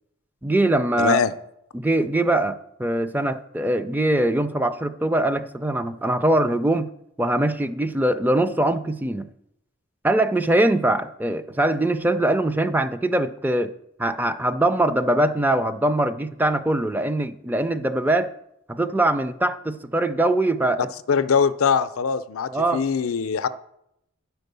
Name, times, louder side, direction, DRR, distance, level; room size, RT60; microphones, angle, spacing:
voice 1, 0.4-1.2 1.7-6.9 7.2-9.3 10.0-13.7 14.0-18.3 18.7-20.8 22.5-22.8, right 1 dB, 10° right, 11 dB, 0.4 m, -22 dB
voice 2, 1.0-1.3 21.1-23.5, left 6 dB, 75° left, 13 dB, 0.5 m, -22 dB
9.9 x 4.6 x 6.7 m, 0.80 s
head